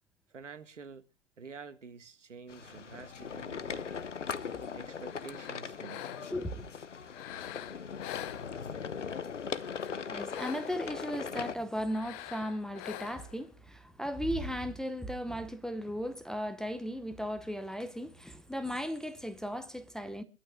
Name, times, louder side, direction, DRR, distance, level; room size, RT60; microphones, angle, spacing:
voice 1, 0.3-1.0 1.4-4.0 4.7-6.1, right 5 dB, 80° right, 1.5 m, -48 dB
sound 1, 2.5-11.6, left 6 dB, 80° left, 1.0 m, -39 dB
sound 2, 5.0-6.5 7.1-8.9 9.5-11.0 11.8-13.4, left 14 dB, 30° left, 1.0 m, -45 dB
voice 2, 6.3-6.7 10.1-20.2, equal, ahead, 0.7 m, -36 dB
25.0 x 12.5 x 2.2 m
figure-of-eight pair, 110°, 36 cm